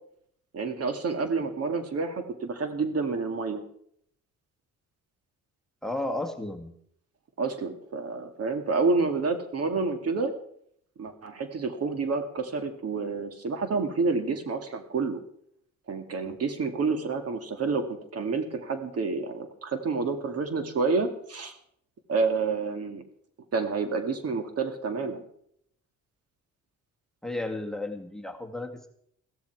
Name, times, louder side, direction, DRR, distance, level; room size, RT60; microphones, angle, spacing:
voice 1, 0.5-3.6 7.4-10.3 11.0-15.2 15.9-21.6 22.1-23.0 23.5-25.2, right 4 dB, 55° right, 8 dB, 2.2 m, -29 dB
voice 2, 5.8-6.7 27.2-28.9, left 2 dB, ahead, 7 dB, 1.9 m, -33 dB
15.5 x 13.5 x 4.7 m, 0.67 s
cardioid pair, 90°, 30 cm